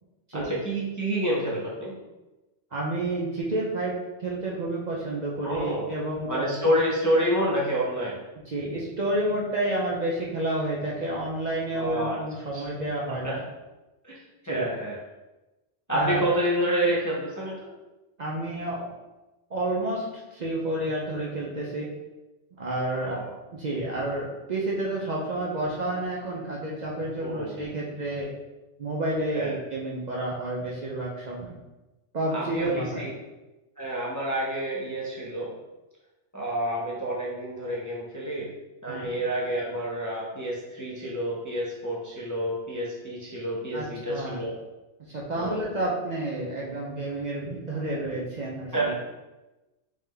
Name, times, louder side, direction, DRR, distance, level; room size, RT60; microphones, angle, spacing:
voice 1, 0.3-2.0 5.4-5.9 6.3-8.2 11.7-12.2 12.5-12.7 13.1-13.4 14.0-14.2 14.4-15.0 15.9-17.7 23.0-23.3 27.2-27.6 29.3-29.6 32.3-33.1 33.8-35.5 36.3-38.5 38.8-44.6 45.4-45.7 48.7-49.0, equal, 20° left, -5 dB, 0.5 m, -28 dB
voice 2, 2.7-6.9 8.5-13.4 14.5-14.7 15.9-16.2 18.2-18.9 19.5-21.9 22.6-23.2 23.5-28.3 28.8-31.5 32.1-33.1 38.9-39.2 43.7-44.4 45.1-49.0, right 1 dB, 50° right, -4 dB, 0.6 m, -30 dB
3.7 x 3.1 x 3.3 m, 1.1 s
omnidirectional pair, 1.2 m